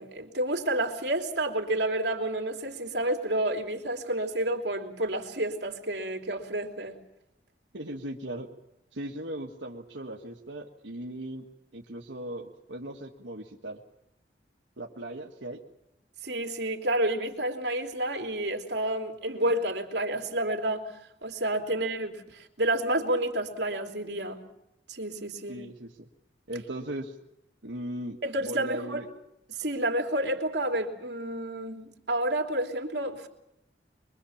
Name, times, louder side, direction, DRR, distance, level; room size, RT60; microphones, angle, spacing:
voice 1, 0.0-7.0 16.2-20.9 21.2-24.4 24.9-25.6 28.2-29.0 29.5-33.3, right 1 dB, 65° right, 3.2 m, -30 dB
voice 2, 7.7-8.5 8.9-11.4 11.7-13.8 14.8-15.6 21.7-21.8 25.5-26.1 26.5-27.2 27.6-29.1, right 1 dB, 90° right, 1.9 m, -38 dB
24.0 x 23.5 x 7.3 m
head